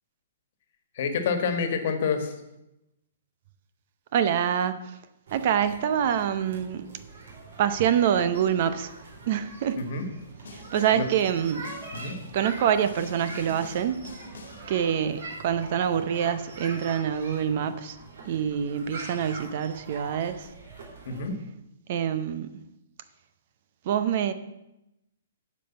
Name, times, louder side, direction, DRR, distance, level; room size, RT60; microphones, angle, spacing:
voice 1, 0.9-2.3 9.8-10.1 10.9-11.1 11.9-12.2 21.0-21.3, left 5 dB, 50° left, 7 dB, 1.5 m, -28 dB
voice 2, 4.1-5.0 5.3-6.9 7.6-8.9 9.3-9.8 10.5-11.6 12.3-14.0 14.7-18.0 18.3-20.5 21.9-22.5 23.9-24.3, right 9 dB, 45° right, 12 dB, 0.7 m, -26 dB
sound 1, 5.3-21.3, right 3 dB, 65° right, 3.3 m, -43 dB
Snare drum, 10.4-11.1 11.6-12.3 12.8-14.7, left 4 dB, 75° left, 1.6 m, -45 dB
9.8 x 5.3 x 7.9 m, 0.91 s
hypercardioid pair, 160°, 0 cm